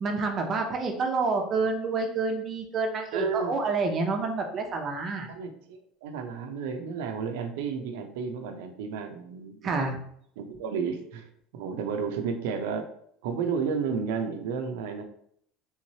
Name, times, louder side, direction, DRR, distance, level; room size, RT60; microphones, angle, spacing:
voice 1, 0.0-5.3 9.6-10.0, right 4 dB, 30° right, 4 dB, 0.6 m, -28 dB
voice 2, 3.1-3.5 5.3-9.9 10.4-12.9 13.2-15.0, right 6 dB, 90° right, 5 dB, 0.5 m, -32 dB
3.5 x 3.1 x 2.8 m, 0.67 s
cardioid pair, 160°, 0 cm